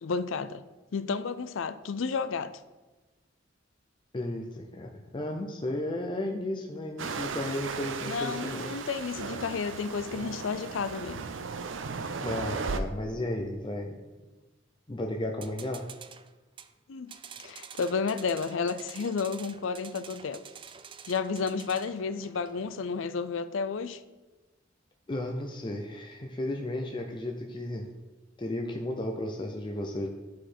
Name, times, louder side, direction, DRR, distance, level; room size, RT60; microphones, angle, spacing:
voice 1, 0.0-0.6 0.9-2.5 8.1-11.2 16.9-17.1 17.4-20.4 21.1-24.0, left 5 dB, 85° left, 0.5 m, -31 dB
voice 2, 4.1-8.7 12.2-14.0 14.9-15.9 25.1-27.9 28.4-30.1, left 1 dB, 25° left, 0.6 m, -34 dB
sound 1, 7.0-12.8, right 4 dB, 80° right, 0.6 m, -36 dB
sound 2, 15.4-16.7 17.1-22.8, right 7 dB, 25° right, 0.3 m, -48 dB
11.5 x 4.9 x 4.4 m
head